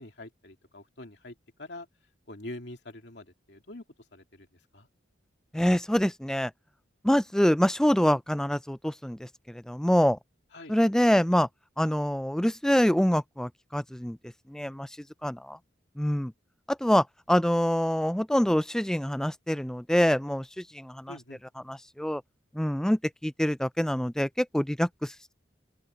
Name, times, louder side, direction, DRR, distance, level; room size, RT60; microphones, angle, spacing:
voice 1, 0.0-1.9 2.3-3.8 4.1-4.9 10.5-10.7 21.1-21.4, left 1 dB, 60° left, 2.8 m, -45 dB
voice 2, 5.5-6.5 7.0-10.2 10.7-11.5 11.8-14.2 14.5-15.0 15.2-15.6 16.0-16.3 16.7-21.1 21.7-22.2 22.5-25.3, equal, 5° left, 0.3 m, -25 dB
open air
head